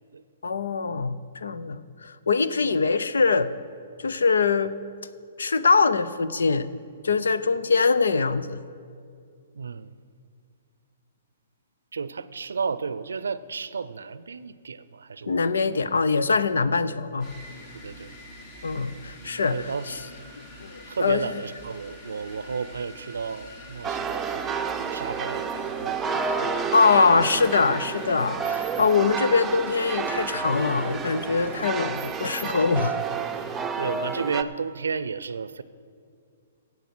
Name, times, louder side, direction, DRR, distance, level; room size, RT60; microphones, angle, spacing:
voice 1, 0.4-3.5 4.0-4.7 5.4-6.7 7.0-8.6 15.3-17.3 18.6-19.5 20.6-20.7 21.0-21.2 26.7-33.0, left 4 dB, 85° left, 14 dB, 0.6 m, -23 dB
voice 2, 9.5-9.9 11.9-15.8 17.7-18.2 19.5-20.0 20.9-27.0 33.8-35.6, right 5 dB, 85° right, 16 dB, 0.5 m, -33 dB
sound 1, 17.2-33.6, equal, 45° left, 3.5 m, -45 dB
sound 2, 23.8-34.4, right 6 dB, 15° right, 0.6 m, -30 dB
16.0 x 8.2 x 6.1 m, 2.3 s
hypercardioid pair, 130°, 0 cm